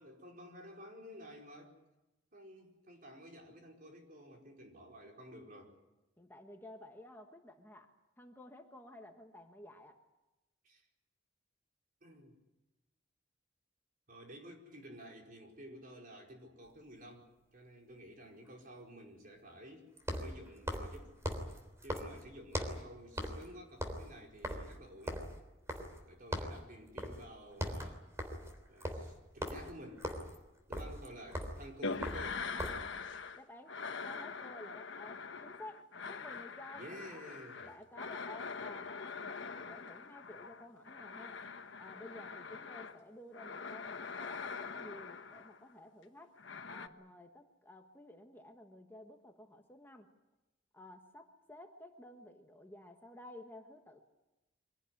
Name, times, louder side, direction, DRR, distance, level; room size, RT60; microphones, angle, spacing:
voice 1, 0.0-1.7 2.3-5.7 10.6-10.8 12.0-12.4 14.1-19.9 20.2-21.2 21.8-25.2 26.0-28.1 28.7-30.1 30.7-32.5 36.8-37.7, equal, 45° right, 1 dB, 4.8 m, -52 dB
voice 2, 6.2-7.9 8.2-10.0 33.3-37.2 37.7-41.4 41.8-46.4 46.7-50.1 50.7-54.0, left 1 dB, 10° left, 3 dB, 1.4 m, -53 dB
sound 1, 16.7-16.8 20.0-22.9 23.2-23.5 23.7-26.1 26.3-26.6 27.0-27.2 27.5-32.9, equal, 15° right, 3.4 m, -40 dB
sound 2, 31.8-33.4 33.7-43.0 43.3-45.7 46.4-46.9, left 5 dB, 75° left, 1.3 m, -43 dB
24.5 x 17.5 x 9.8 m, 1.0 s
head